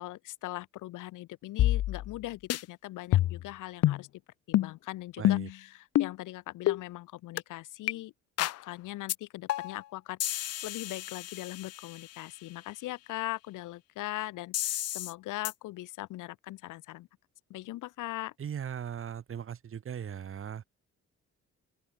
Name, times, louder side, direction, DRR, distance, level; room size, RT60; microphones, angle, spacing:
voice 1, 0.0-4.1 4.5-8.1 8.4-17.1 17.5-18.3, left 17 dB, 90° left, 1.5 m, -40 dB
sound 1, 1.6-2.2 2.5-2.6 3.1-3.5 3.8-4.0 4.5-4.7 5.2-5.5 6.0-6.1 6.7-6.8 7.4-7.5 7.9-8.0 8.4-8.6 9.1-9.2 9.5-9.8 10.2-12.0 14.5-15.1 15.5-15.6, left 14 dB, 55° left, 0.5 m, -28 dB
voice 2, 5.2-5.5 18.4-20.6, right 8 dB, 45° right, 1.2 m, -38 dB
open air
cardioid pair, 90°, 30 cm